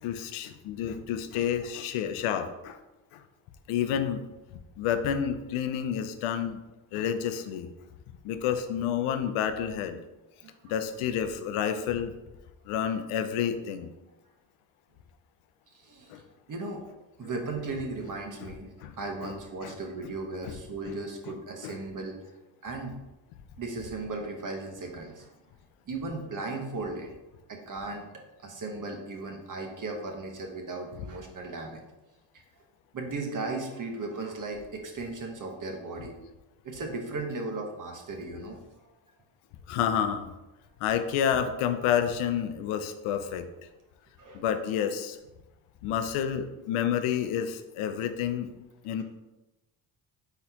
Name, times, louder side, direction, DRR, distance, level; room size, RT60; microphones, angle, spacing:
voice 1, 0.0-2.8 3.1-3.2 3.7-4.2 4.8-6.6 6.9-7.7 8.2-10.0 10.6-12.1 12.7-13.9 16.1-16.2 18.8-18.9 19.2-19.3 19.6-19.7 20.4-20.5 20.9-21.0 21.6-21.8 39.7-40.3 40.8-43.5 44.3-45.2 45.8-48.5 48.8-49.0, left 8 dB, 80° left, 9 dB, 0.6 m, -29 dB
voice 2, 10.4-10.7 15.7-16.1 16.5-16.8 17.2-22.3 22.6-23.0 23.6-25.3 25.9-27.1 27.5-28.1 28.4-31.8 32.9-36.1 36.6-38.6 44.2-44.4, right 3 dB, 40° right, 2 dB, 1.1 m, -36 dB
4.2 x 3.9 x 2.8 m, 1.0 s
supercardioid pair, 70°, 50 cm